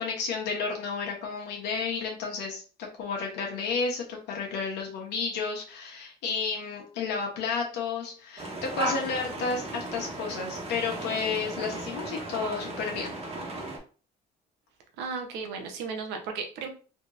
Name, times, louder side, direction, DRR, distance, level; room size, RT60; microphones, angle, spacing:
voice 1, 0.0-13.1, left 5 dB, 80° left, -1 dB, 1.0 m, -32 dB
sound 1, 8.4-13.8, right 1 dB, 35° right, 1.2 m, -35 dB
voice 2, 15.0-16.7, right 5 dB, 85° right, 3 dB, 0.8 m, -35 dB
3.6 x 2.8 x 2.5 m, 0.38 s
cardioid pair, 110°, 17 cm